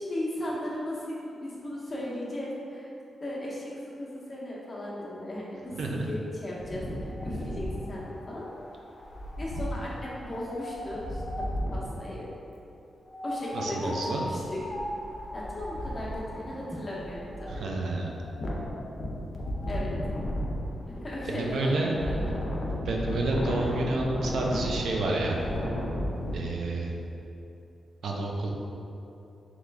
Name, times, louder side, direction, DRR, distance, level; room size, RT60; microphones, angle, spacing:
voice 1, 0.0-2.9 3.2-8.4 9.4-11.4 11.7-12.3 13.2-14.6 15.3-17.6 19.7-19.9 21.0-22.2, left 1 dB, 25° left, -6 dB, 0.8 m, -36 dB
Wind, 6.6-12.0 13.1-26.3, equal, 50° left, 0.5 m, -34 dB
voice 2, 13.5-14.3 17.5-18.1 21.3-22.0 22.8-25.4 26.3-26.9 28.0-28.5, right 2 dB, 85° right, 0 dB, 0.4 m, -29 dB
3.7 x 3.0 x 3.3 m, 2.9 s
wide cardioid pair, 135°, 0 cm